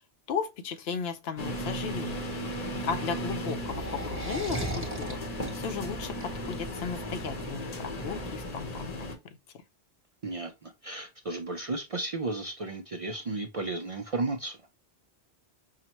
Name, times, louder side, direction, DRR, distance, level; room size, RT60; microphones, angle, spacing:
voice 1, 0.3-2.2 2.8-5.2 5.6-9.1, left 6 dB, 75° left, 0.8 m, -35 dB
sound 1, 1.4-9.2, equal, 40° left, 0.8 m, -36 dB
sound 2, 2.8-7.9, right 2 dB, 15° right, 0.8 m, -38 dB
voice 2, 10.2-14.6, right 3 dB, 50° right, 0.4 m, -34 dB
5.6 x 2.1 x 2.9 m
omnidirectional pair, 1.1 m